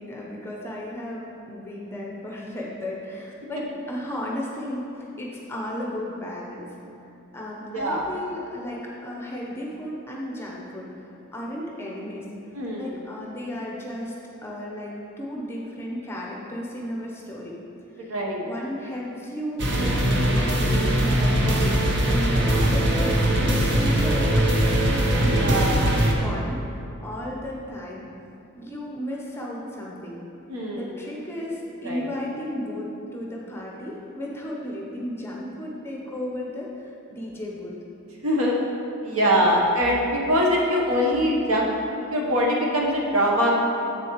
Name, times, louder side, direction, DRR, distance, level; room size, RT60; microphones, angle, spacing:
voice 1, 0.0-4.9 5.2-6.7 7.3-10.9 11.3-12.3 12.7-14.1 14.4-17.6 17.9-24.4 25.2-26.6 27.0-28.1 28.5-30.2 30.7-37.7, left 1 dB, 10° left, -3 dB, 0.8 m, -34 dB
voice 2, 7.7-8.1 12.5-12.9 18.1-18.4 25.3-25.8 30.5-30.9 31.8-32.0 38.2-38.5 39.0-43.5, equal, 80° right, -2 dB, 1.1 m, -23 dB
sound 1, 19.6-26.1, right 1 dB, 55° right, 0.7 m, -21 dB
7.8 x 6.8 x 3.1 m, 2.8 s
head